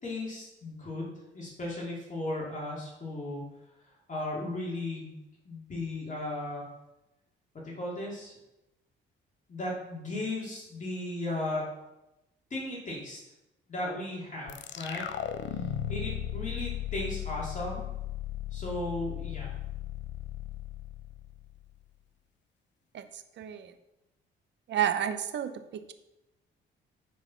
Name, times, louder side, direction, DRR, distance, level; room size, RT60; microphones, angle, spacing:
voice 1, 0.0-3.4 4.1-5.2 5.4-6.6 7.6-8.3 9.5-11.7 12.5-13.2 13.7-15.0 15.9-17.8 18.5-19.5, left 2 dB, 40° left, -4 dB, 2.7 m, -36 dB
sound 1, 14.5-21.8, left 11 dB, 65° left, 0.6 m, -36 dB
voice 2, 23.4-23.7 24.7-25.9, right 10 dB, 65° right, 10 dB, 0.8 m, -31 dB
8.2 x 4.8 x 5.6 m, 0.94 s
cardioid pair, 90°, 20 cm